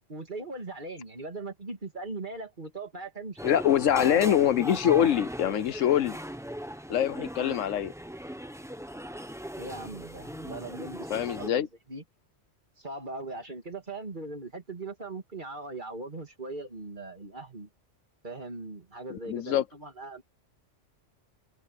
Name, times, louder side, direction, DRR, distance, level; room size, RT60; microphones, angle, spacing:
voice 1, 0.1-4.5 9.6-12.0 12.8-17.7 18.2-20.2, right 2 dB, 40° right, 2.8 m, -39 dB
voice 2, 3.4-6.2 6.9-7.9 11.1-11.7 19.1-19.6, left 10 dB, 85° left, 1.1 m, -24 dB
sound 1, 3.4-11.5, equal, 5° right, 1.0 m, -39 dB
omnidirectional pair, 1.3 m